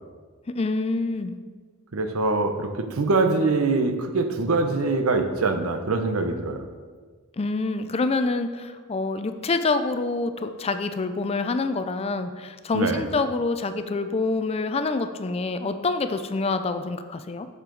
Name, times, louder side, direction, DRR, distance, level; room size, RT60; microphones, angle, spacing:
voice 1, 0.6-1.3 7.4-17.5, left 3 dB, 30° left, 9 dB, 0.4 m, -26 dB
voice 2, 1.9-6.6 12.7-13.0, right 3 dB, 85° right, 7 dB, 0.8 m, -23 dB
7.4 x 6.7 x 3.9 m, 1.5 s
head